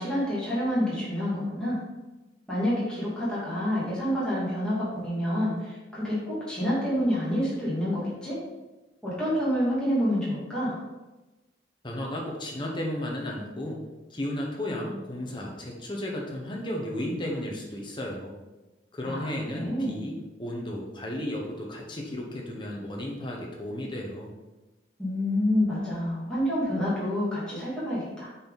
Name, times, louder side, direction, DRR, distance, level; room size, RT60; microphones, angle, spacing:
voice 1, 0.0-1.8 2.5-8.4 9.0-10.8 19.0-20.0 25.0-28.3, equal, 5° left, -9 dB, 2.4 m, -28 dB
voice 2, 11.8-13.8 14.1-18.4 18.9-24.3, left 1 dB, 25° left, -1 dB, 1.1 m, -34 dB
7.6 x 4.3 x 4.0 m, 1.1 s
head